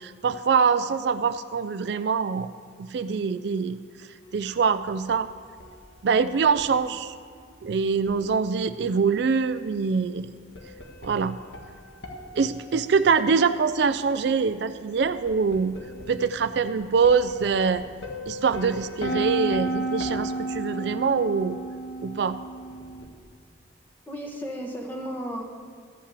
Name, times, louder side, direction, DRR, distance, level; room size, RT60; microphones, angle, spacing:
voice 1, 0.0-2.5 2.8-3.8 4.3-5.3 6.0-7.1 7.6-10.3 11.0-11.4 12.4-15.8 16.1-17.8 18.3-21.6 22.0-22.4, right 5 dB, 60° right, 11 dB, 0.4 m, -24 dB
sound 1, 4.2-5.1 5.6-6.7 8.1-8.4 10.6-14.2 15.0-23.1, right 2 dB, 70° left, 1.5 m, -35 dB
voice 2, 24.1-25.4, equal, 10° left, 0 dB, 1.4 m, -34 dB
13.0 x 5.6 x 8.3 m, 2.1 s
head